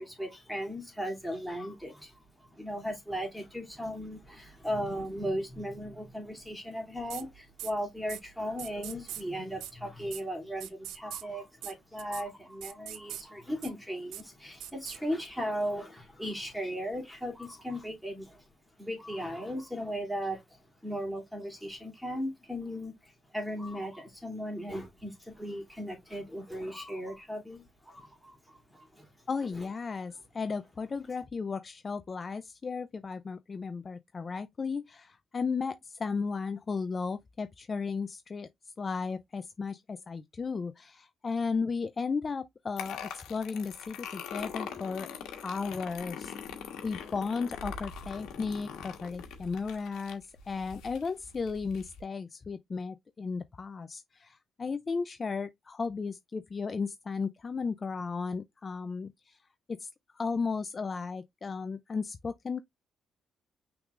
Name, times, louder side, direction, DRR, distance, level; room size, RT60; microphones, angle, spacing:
voice 1, 0.0-18.5 18.8-29.1 29.5-29.7, equal, ahead, 2.7 m, -37 dB
sound 1, 7.1-7.2 7.6-7.7 8.1-8.2 8.6-9.2 9.6-9.7 10.1-10.2 10.6-11.2 11.6-11.7 12.0-12.2 12.6-13.2 13.6-13.7 14.1-14.2 14.6-15.0, right 11 dB, 85° right, 0.6 m, -40 dB
voice 2, 29.3-38.5 38.8-45.1 45.4-46.3 46.8-59.4 59.7-62.6, left 5 dB, 35° left, 0.4 m, -35 dB
sound 2, 42.8-52.0, left 7 dB, 85° left, 1.3 m, -42 dB
5.9 x 3.7 x 2.4 m
cardioid pair, 90°, 0 cm